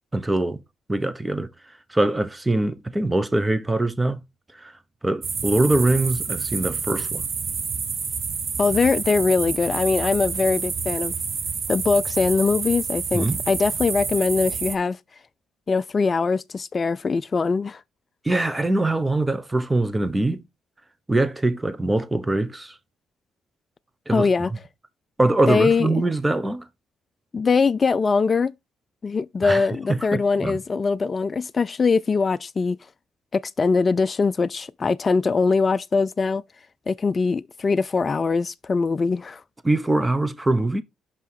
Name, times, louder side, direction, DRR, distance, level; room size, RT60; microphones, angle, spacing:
voice 1, 0.1-0.6 0.9-1.5 1.9-4.2 4.5-4.7 5.0-7.3 13.1-13.4 18.2-20.4 21.1-22.8 24.1-24.5 25.2-26.7 29.4-30.6 39.6-40.8, right 2 dB, 15° right, 1.0 m, -23 dB
sound 1, 5.2-14.8, right 5 dB, 50° right, 1.2 m, -28 dB
voice 2, 8.6-11.1 11.7-15.0 15.7-17.8 24.1-24.5 25.5-26.0 27.3-28.5 29.0-32.8 33.3-36.4 36.9-39.4, left 4 dB, 40° left, 0.4 m, -22 dB
5.7 x 5.4 x 4.7 m
hypercardioid pair, 50°, 0 cm